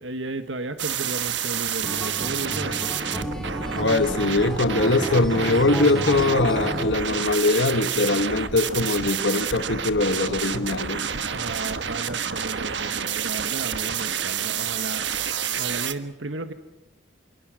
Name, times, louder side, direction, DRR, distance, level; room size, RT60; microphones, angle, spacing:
voice 1, 0.0-2.8 11.3-15.1 15.6-16.5, right 2 dB, 85° right, 1.4 m, -34 dB
sound 1, 0.8-15.9, right 7 dB, 70° right, 1.4 m, -29 dB
Acoustic guitar, 1.8-7.0, equal, 5° left, 1.9 m, -31 dB
voice 2, 3.8-11.0, left 2 dB, 70° left, 1.5 m, -22 dB
27.5 x 22.5 x 6.4 m
head